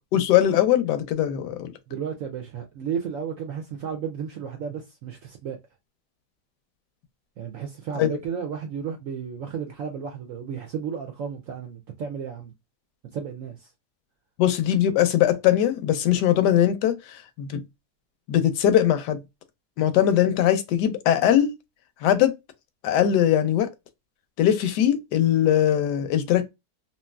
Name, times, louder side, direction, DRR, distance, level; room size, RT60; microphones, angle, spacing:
voice 1, 0.1-1.7 8.0-8.2 14.4-17.0 17.4-17.6 18.3-19.2 19.8-21.5 22.0-22.3 22.8-23.7 24.4-26.5, left 11 dB, 80° left, 1.2 m, -21 dB
voice 2, 1.9-5.6 7.4-12.5 13.1-13.7, right 7 dB, 70° right, 0.8 m, -33 dB
3.0 x 2.8 x 2.2 m
omnidirectional pair, 1.8 m